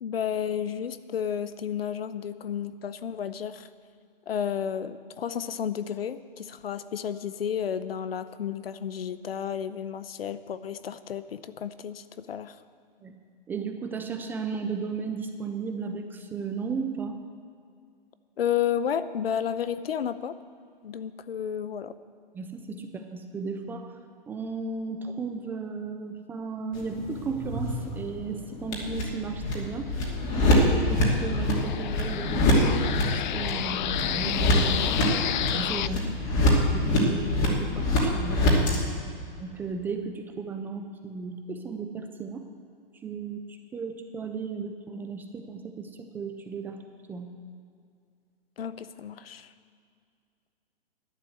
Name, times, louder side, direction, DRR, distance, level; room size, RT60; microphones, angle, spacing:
voice 1, 0.0-3.7 4.3-12.6 18.4-20.4 20.8-22.0 35.9-36.2 48.6-49.5, left 8 dB, 85° left, 14 dB, 0.8 m, -32 dB
voice 2, 13.5-17.2 22.3-23.9 24.3-29.9 30.4-35.0 35.4-36.0 36.7-38.7 39.4-42.4 43.0-46.8 47.1-47.3, right 4 dB, 5° right, 5 dB, 0.3 m, -35 dB
sound 1, 26.7-38.8, left 1 dB, 30° left, 2.7 m, -25 dB
sound 2, 28.6-35.9, left 11 dB, 55° left, 0.5 m, -32 dB
11.5 x 9.5 x 7.7 m, 2.2 s
hypercardioid pair, 135°, 29 cm